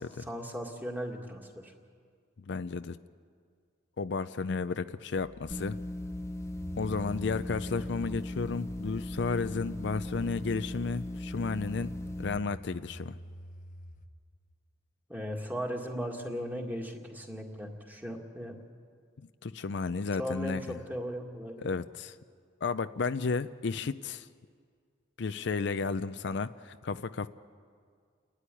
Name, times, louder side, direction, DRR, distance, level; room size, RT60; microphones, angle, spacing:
voice 1, 0.0-1.7 15.1-18.6 20.2-21.6, equal, 10° right, 1 dB, 2.0 m, -37 dB
voice 2, 2.5-3.0 4.0-5.8 6.8-11.9 12.2-13.2 19.4-20.8 21.6-22.1 22.6-24.3 25.2-27.3, left 4 dB, 60° left, 12 dB, 0.5 m, -33 dB
sound 1, 5.2-14.1, equal, 45° left, 1.0 m, -49 dB
sound 2, 5.5-12.4, left 1 dB, 15° left, 0.8 m, -38 dB
29.5 x 13.0 x 10.0 m, 2.1 s
head